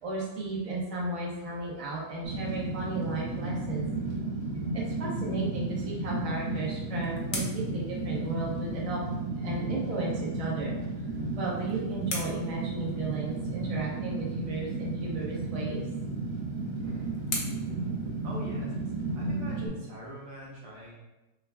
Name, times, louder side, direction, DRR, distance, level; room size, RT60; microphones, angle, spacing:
voice 1, 0.0-3.9 4.7-9.0 9.4-10.7 11.4-15.8, right 2 dB, 30° right, -5 dB, 0.7 m, -34 dB
Fire, 2.2-19.7, right 3 dB, 65° right, 1.2 m, -33 dB
sound 1, 6.4-8.9 11.0-13.4 15.7-18.8, left 2 dB, 50° left, 0.6 m, -42 dB
voice 2, 18.2-18.7 19.2-20.9, right 1 dB, 85° right, -4 dB, 1.6 m, -42 dB
5.8 x 2.3 x 2.3 m, 1.0 s
omnidirectional pair, 1.7 m